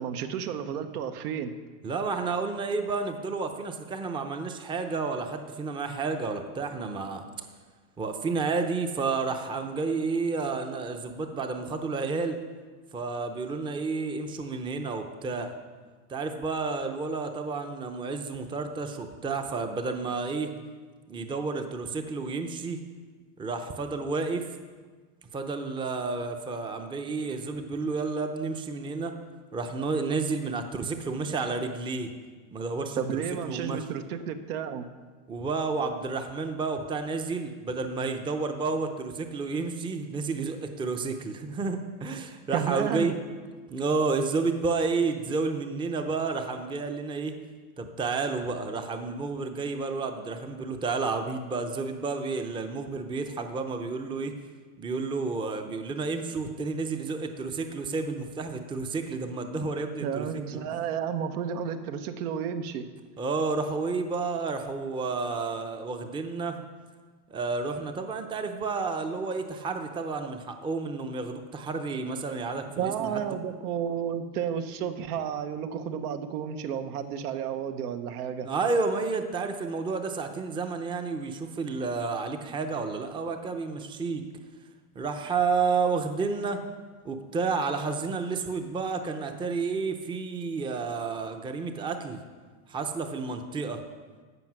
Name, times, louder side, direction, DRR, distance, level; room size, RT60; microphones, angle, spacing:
voice 1, 0.0-1.5 33.0-34.8 42.5-43.1 60.0-62.9 72.8-78.5, right 8 dB, 80° right, 8 dB, 1.1 m, -32 dB
voice 2, 1.8-7.3 8.0-12.4 12.9-15.5 16.1-20.5 21.1-22.8 23.4-24.5 25.3-29.1 29.5-32.1 32.5-33.8 35.3-43.2 43.7-47.3 47.8-54.3 54.8-60.6 63.2-66.6 67.3-73.1 78.4-84.2 85.0-86.6 87.0-92.2 92.7-93.8, right 4 dB, 10° right, 6 dB, 0.6 m, -31 dB
15.5 x 5.5 x 6.0 m, 1.4 s
supercardioid pair, 135°, 45 cm